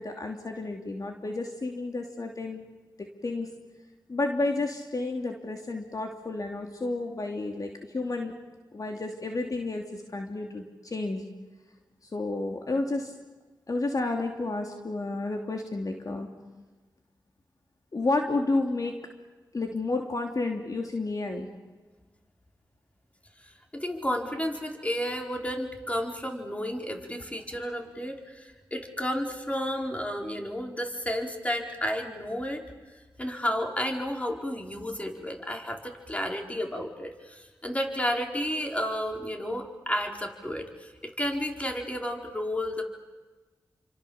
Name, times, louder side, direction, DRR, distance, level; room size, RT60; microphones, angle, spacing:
voice 1, 0.0-2.6 3.0-3.5 4.1-8.3 8.7-11.2 12.1-13.1 13.7-16.3 17.9-19.0 19.5-21.5, left 2 dB, 50° left, 2 dB, 2.9 m, -31 dB
voice 2, 23.7-32.6 33.2-40.7 41.0-42.8, equal, 15° left, 2 dB, 4.6 m, -32 dB
29.5 x 25.5 x 7.2 m, 1.3 s
cardioid pair, 40°, 8 cm